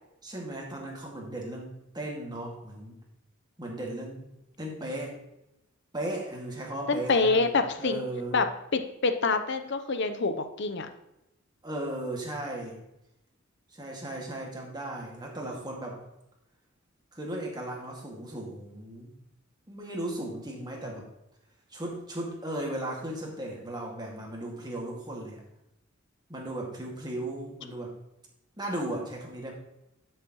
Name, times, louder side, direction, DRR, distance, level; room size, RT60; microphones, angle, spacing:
voice 1, 0.2-3.0 3.6-4.3 4.6-5.2 5.9-7.5 7.8-8.4 11.6-12.8 13.7-16.0 17.1-19.2 19.7-21.1 21.7-25.4 26.3-27.9 28.6-29.5, right 1 dB, 20° right, -1 dB, 2.0 m, -36 dB
voice 2, 6.9-8.1 8.3-8.5 8.7-10.9, left 3 dB, 60° left, 9 dB, 0.8 m, -26 dB
12.0 x 6.6 x 3.0 m, 0.89 s
head